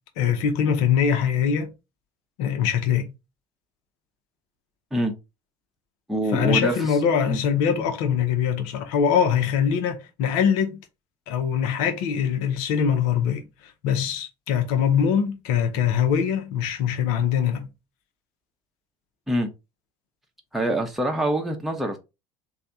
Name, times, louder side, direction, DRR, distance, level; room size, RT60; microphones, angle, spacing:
voice 1, 0.2-1.7 2.4-3.1 6.3-10.8 11.3-17.7, left 7 dB, 65° left, 0.8 m, -23 dB
voice 2, 6.1-6.8 7.3-7.4 19.3-19.5 20.5-22.0, right 1 dB, ahead, 0.9 m, -25 dB
3.4 x 2.3 x 4.0 m
hypercardioid pair, 70°, 18 cm